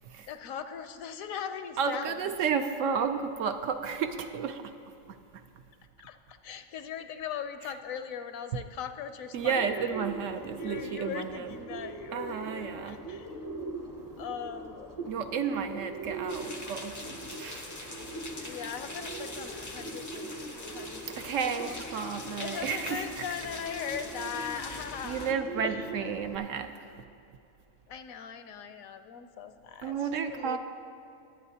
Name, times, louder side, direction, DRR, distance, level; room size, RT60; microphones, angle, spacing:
voice 1, 0.0-2.3 6.0-10.0 10.6-13.4 14.2-15.0 18.4-25.9 27.9-30.0 30.3-30.6, left 7 dB, 75° left, 9 dB, 1.0 m, -40 dB
voice 2, 1.8-4.8 5.1-5.4 9.3-11.5 12.1-13.0 15.1-17.9 18.4-18.6 21.2-23.0 25.0-27.0 29.8-30.6, right 6 dB, 70° right, 7 dB, 0.9 m, -32 dB
Bird, 9.4-26.4, right 2 dB, 20° right, 0.7 m, -41 dB
sound 1, 16.3-25.3, left 2 dB, 30° left, 0.3 m, -43 dB
sound 2, 21.2-25.5, right 3 dB, 90° right, 1.7 m, -57 dB
21.5 x 8.8 x 2.8 m, 2.7 s
omnidirectional pair, 1.5 m